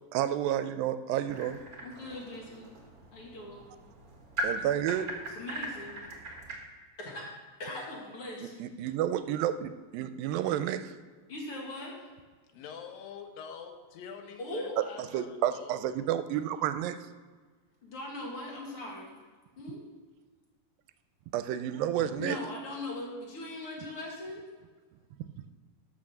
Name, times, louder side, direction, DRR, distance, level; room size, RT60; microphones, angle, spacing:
voice 1, 0.1-1.6 4.4-5.1 8.4-10.9 15.1-17.0 21.3-22.4, right 11 dB, 80° right, 11 dB, 2.3 m, -30 dB
sound 1, 1.3-6.6, right 1 dB, 40° right, 1.3 m, -39 dB
voice 2, 1.8-2.7 3.1-3.6 5.4-6.1 7.0-8.5 11.3-12.0 14.4-14.7 17.8-19.2 19.6-19.8 22.2-24.4, left 1 dB, 45° left, -2 dB, 2.5 m, -40 dB
voice 3, 12.5-15.8, left 7 dB, 75° left, 4 dB, 2.8 m, -46 dB
12.0 x 5.8 x 6.5 m, 1.4 s
omnidirectional pair, 4.2 m